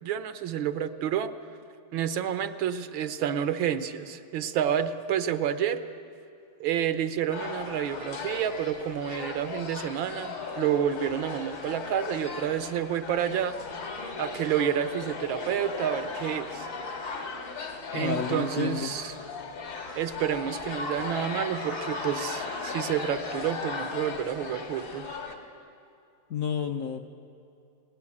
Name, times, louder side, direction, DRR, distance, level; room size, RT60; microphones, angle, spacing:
voice 1, 0.0-1.3 1.9-5.8 6.6-13.5 14.2-16.7 17.9-19.1 20.0-25.1, right 9 dB, 85° right, 10 dB, 1.7 m, -29 dB
sound 1, 7.3-25.4, left 4 dB, 75° left, 2.6 m, -37 dB
voice 2, 17.9-18.9 26.3-27.1, left 7 dB, 60° left, 5 dB, 0.9 m, -30 dB
21.5 x 18.0 x 8.5 m, 2.5 s
omnidirectional pair, 2.1 m